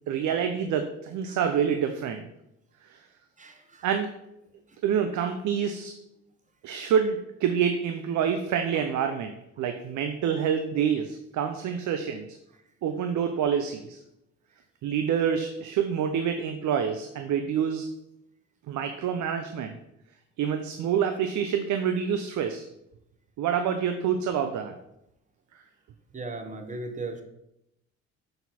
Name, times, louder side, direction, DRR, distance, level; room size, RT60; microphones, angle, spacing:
voice 1, 0.1-2.3 2.9-3.0 3.8-4.1 4.8-5.9 6.6-12.3 12.8-14.0 14.8-17.9 18.7-19.8 20.4-22.7 23.4-24.7, right 8 dB, 75° right, 7 dB, 0.6 m, -27 dB
voice 2, 3.4-3.8 26.1-27.2, right 3 dB, 25° right, 6 dB, 1.0 m, -37 dB
6.7 x 4.2 x 4.1 m, 0.82 s
cardioid pair, 90°, 30 cm